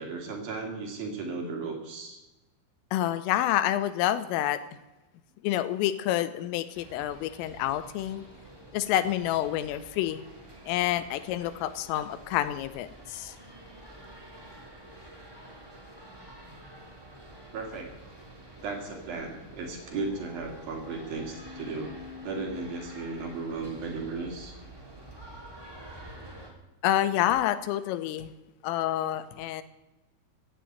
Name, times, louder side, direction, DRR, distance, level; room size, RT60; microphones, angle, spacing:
voice 1, 0.0-2.2 17.5-17.9 18.6-21.9 22.2-24.5, right 4 dB, 50° right, 1 dB, 3.7 m, -35 dB
voice 2, 2.9-4.6 5.4-8.3 8.7-10.2 10.7-13.3 26.8-28.3 28.6-29.6, left 13 dB, 85° left, 12 dB, 3.3 m, -28 dB
sound 1, 6.7-26.5, equal, 5° right, 1.9 m, -47 dB
16.0 x 8.2 x 9.0 m, 1.1 s
omnidirectional pair, 5.8 m